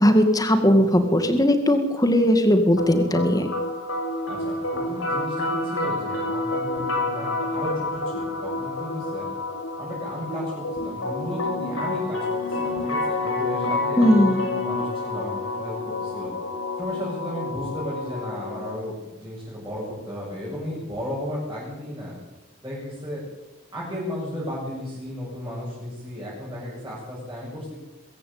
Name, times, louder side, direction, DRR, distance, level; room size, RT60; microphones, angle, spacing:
voice 1, 0.0-3.5 14.0-14.4, equal, 15° left, 7 dB, 2.1 m, -18 dB
sound 1, 2.8-18.8, left 2 dB, 75° left, 7.2 m, -29 dB
voice 2, 4.3-9.3 9.8-16.3 16.8-22.1 22.6-23.2 23.7-27.8, equal, 15° right, -7 dB, 8.0 m, -34 dB
22.0 x 16.0 x 8.7 m, 1.0 s
head